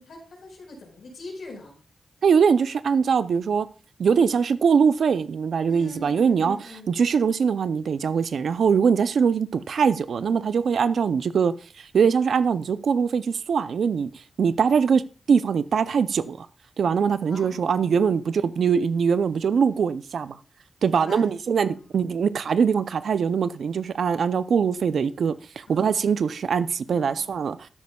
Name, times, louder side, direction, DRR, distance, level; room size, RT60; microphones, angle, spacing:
voice 1, 0.0-1.8 4.1-4.3 5.7-7.0 17.3-18.0 20.8-21.8 25.7-26.0 26.9-27.4, left 1 dB, 80° left, 4.4 m, -42 dB
voice 2, 2.2-3.7 4.0-6.6 6.9-14.1 14.4-15.0 15.3-16.5 16.8-20.4 20.8-27.7, right 6 dB, 80° right, 0.5 m, -22 dB
12.5 x 9.3 x 2.3 m
cardioid pair, 60°, 0 cm